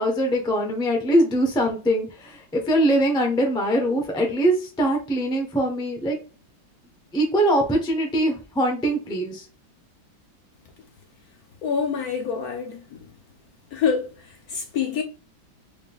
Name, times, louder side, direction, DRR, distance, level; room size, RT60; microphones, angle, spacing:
voice 1, 0.0-6.2 7.1-9.4, right 1 dB, 5° left, 0.5 m, -22 dB
voice 2, 11.6-13.1 13.7-15.0, left 6 dB, 65° left, 1.0 m, -26 dB
4.8 x 3.6 x 2.4 m
omnidirectional pair, 2.1 m